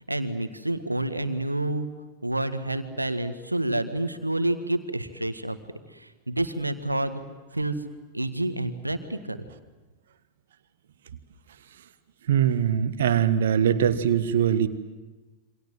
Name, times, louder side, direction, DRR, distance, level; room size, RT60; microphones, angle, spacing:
voice 1, 0.1-1.9 2.2-5.6 5.9-7.2 7.5-7.7 8.1-9.4, right 1 dB, 85° right, 10 dB, 1.6 m, -28 dB
voice 2, 12.3-14.7, right 9 dB, 60° right, 12 dB, 1.5 m, -22 dB
27.5 x 25.5 x 7.7 m, 1.2 s
figure-of-eight pair, 90°, 0 cm